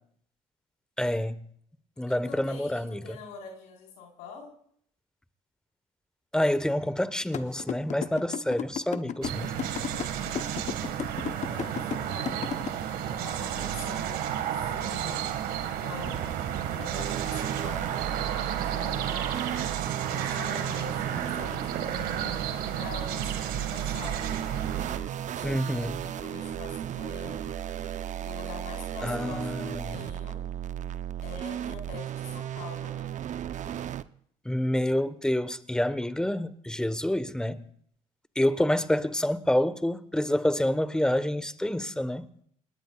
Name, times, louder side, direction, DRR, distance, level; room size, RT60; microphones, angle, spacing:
voice 1, 1.0-1.4 2.0-3.2 6.3-9.5 25.4-26.0 29.0-30.0 34.4-37.6 38.3-42.3, left 1 dB, 5° left, 1.1 m, -28 dB
voice 2, 2.0-4.5 9.7-10.6 11.4-12.5 13.0-15.3 15.8-19.2 20.1-24.4 25.3-27.6 28.2-30.4 31.2-33.1, left 5 dB, 85° left, 4.3 m, -45 dB
sound 1, 7.3-12.7, left 8 dB, 50° left, 0.9 m, -33 dB
sound 2, 9.2-25.0, right 10 dB, 75° right, 1.7 m, -32 dB
sound 3, 16.0-34.0, right 10 dB, 55° right, 0.7 m, -35 dB
29.0 x 19.5 x 2.4 m
supercardioid pair, 70°, 15 cm